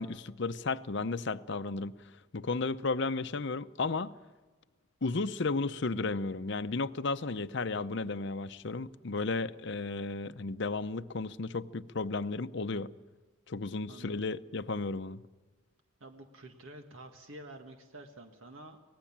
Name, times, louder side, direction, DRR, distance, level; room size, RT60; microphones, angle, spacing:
voice 1, 0.0-2.0 2.3-4.1 5.0-12.9 13.5-15.2, left 3 dB, 60° left, 0.7 m, -34 dB
voice 2, 13.9-14.2 16.0-18.8, right 1 dB, 75° right, 1.8 m, -49 dB
25.5 x 19.0 x 7.3 m
head